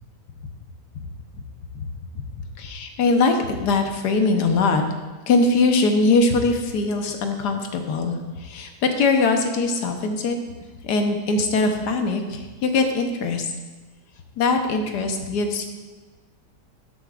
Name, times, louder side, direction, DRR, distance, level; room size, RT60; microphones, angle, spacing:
voice 1, 2.6-4.8 5.3-10.4 10.8-13.5 14.4-15.7, left 3 dB, 75° left, 5 dB, 1.5 m, -21 dB
12.5 x 8.3 x 2.4 m, 1.3 s
omnidirectional pair, 1.8 m